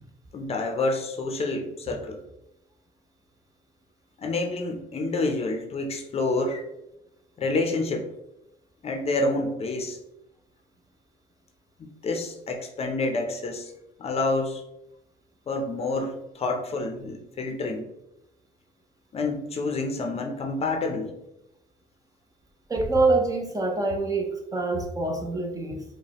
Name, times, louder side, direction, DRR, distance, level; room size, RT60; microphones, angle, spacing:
voice 1, 0.3-2.2 4.2-6.6 7.4-8.1 8.8-10.0 11.8-13.7 14.0-14.6 15.5-17.9 19.1-21.1, left 2 dB, 35° left, 3 dB, 0.6 m, -28 dB
voice 2, 22.7-25.8, right 3 dB, 20° right, 2 dB, 0.6 m, -25 dB
4.8 x 2.1 x 2.9 m, 0.88 s
cardioid pair, 110°, 17 cm